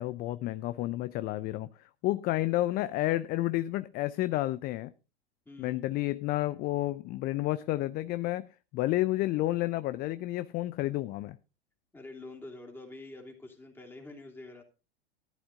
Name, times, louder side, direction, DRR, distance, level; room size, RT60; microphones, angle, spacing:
voice 1, 0.0-4.9 5.6-8.5 8.7-11.4, left 16 dB, 30° left, 0.5 m, -30 dB
voice 2, 5.4-5.8 11.9-14.6, left 2 dB, 5° left, 3.0 m, -46 dB
14.0 x 11.5 x 2.5 m
figure-of-eight pair, 95°, 31 cm